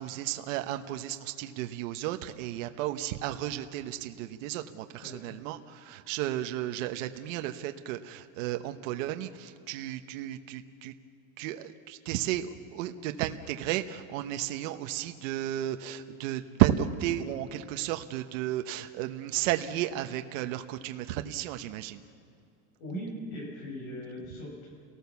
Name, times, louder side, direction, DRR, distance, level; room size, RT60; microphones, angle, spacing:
voice 1, 0.0-10.9 11.4-22.0, right 13 dB, 55° right, 7 dB, 1.1 m, -33 dB
voice 2, 5.0-5.4 22.8-24.7, equal, 45° left, 0 dB, 6.3 m, -39 dB
29.0 x 18.5 x 7.1 m, 2.3 s
supercardioid pair, 180°, 45 cm